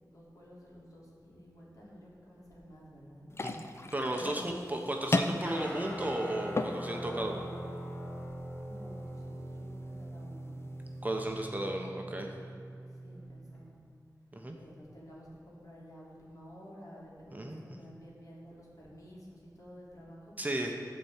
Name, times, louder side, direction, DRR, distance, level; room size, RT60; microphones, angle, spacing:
voice 1, 0.1-3.3 4.0-4.6 8.6-10.6 13.0-13.8 14.6-20.7, equal, 55° left, -5 dB, 2.7 m, -52 dB
sound 1, 3.3-11.3, left 2 dB, 40° left, 0.5 m, -38 dB
voice 2, 3.9-7.4 11.0-12.3 14.3-14.6 17.3-17.6 20.4-20.7, right 1 dB, 25° right, 1 dB, 0.9 m, -34 dB
Guitar, 5.4-13.6, right 1 dB, 20° left, 2.3 m, -42 dB
11.5 x 4.3 x 8.1 m, 2.4 s
wide cardioid pair, 80°, 7 cm